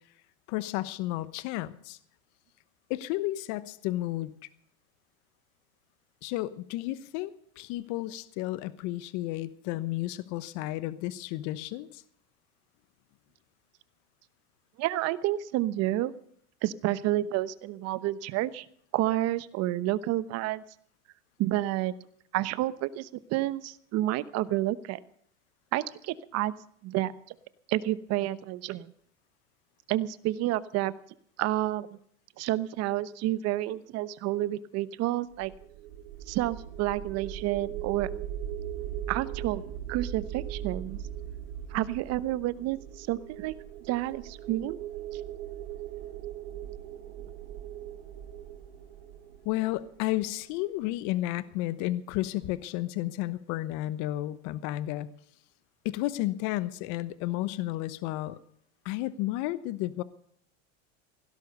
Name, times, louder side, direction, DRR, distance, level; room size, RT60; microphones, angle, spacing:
voice 1, 0.5-2.0 2.9-4.3 6.2-12.0 49.4-55.1 55.8-58.4 58.8-60.0, left 16 dB, 55° left, 16 dB, 1.1 m, -32 dB
voice 2, 14.8-16.1 16.6-18.7 18.9-20.6 21.4-21.9 22.3-25.0 25.7-26.5 26.8-27.1 27.7-28.9 29.9-30.9 31.4-32.0 32.4-35.5 36.3-38.1 39.1-39.6 39.9-41.0 41.7-43.5 43.9-44.8 45.1-45.2, right 15 dB, 45° right, 16 dB, 1.0 m, -29 dB
sound 1, 35.3-50.4, right 10 dB, 70° right, 2.2 m, -39 dB
17.0 x 11.5 x 6.8 m, 0.65 s
supercardioid pair, 125°, 35 cm